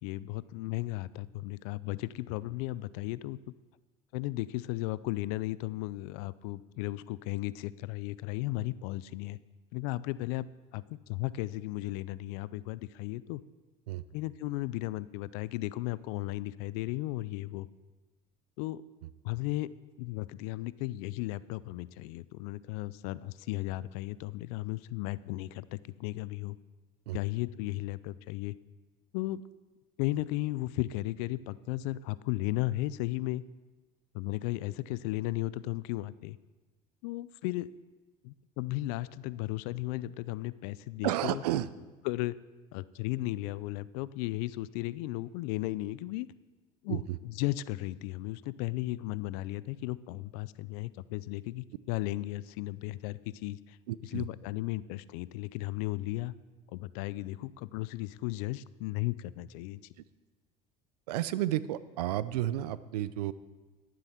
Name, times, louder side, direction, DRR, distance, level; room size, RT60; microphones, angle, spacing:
voice 1, 0.0-3.4 4.1-9.4 9.7-10.5 10.7-13.4 14.1-17.7 18.6-18.8 19.2-19.7 20.0-26.6 27.1-28.5 29.1-29.4 30.0-33.4 34.1-36.4 37.0-37.7 38.2-41.4 42.0-42.4 42.7-46.3 46.8-53.8 54.0-56.3 56.7-59.8, left 17 dB, 75° left, 18 dB, 0.5 m, -35 dB
voice 2, 41.0-41.7 46.9-47.2 53.9-54.3 61.1-63.3, right 13 dB, 90° right, 16 dB, 0.5 m, -32 dB
12.0 x 7.7 x 5.8 m, 1.2 s
supercardioid pair, 90°, 20 cm